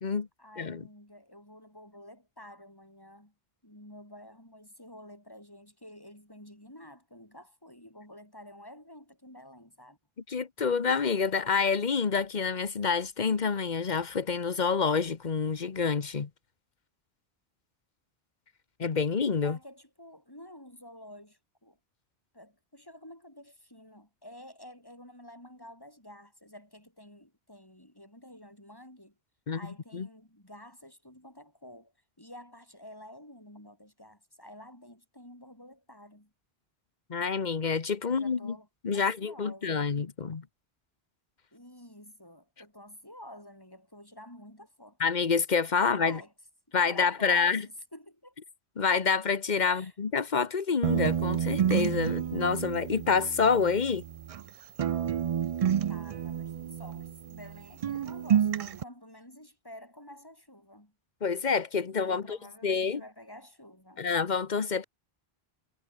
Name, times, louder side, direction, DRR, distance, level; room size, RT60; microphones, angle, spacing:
voice 1, 0.4-3.3 3.6-10.0 19.4-21.8 22.3-29.2 29.5-36.3 38.0-38.7 38.9-39.9 41.5-45.0 45.8-46.3 46.7-48.3 49.7-50.0 55.9-60.9 61.9-64.0, left 1 dB, 20° left, 7.8 m, -50 dB
voice 2, 10.3-16.3 18.8-19.6 29.5-30.1 37.1-38.5 38.8-40.4 45.0-46.2 46.7-47.7 48.8-54.0 61.2-62.4 62.6-63.0 64.0-64.8, left 5 dB, 45° left, 1.2 m, -28 dB
sound 1, 50.8-54.5 54.8-57.6 57.8-58.8, right 9 dB, 55° right, 0.4 m, -29 dB
omnidirectional pair, 1.1 m